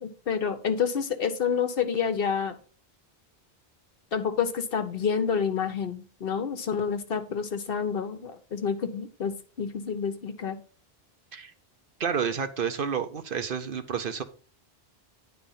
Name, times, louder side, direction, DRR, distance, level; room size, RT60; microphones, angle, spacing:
voice 1, 0.0-2.6 4.1-10.6, left 6 dB, 65° left, 8 dB, 1.1 m, -28 dB
voice 2, 12.0-14.2, right 7 dB, 60° right, 8 dB, 0.9 m, -30 dB
10.0 x 3.5 x 5.5 m, 0.41 s
omnidirectional pair, 1.0 m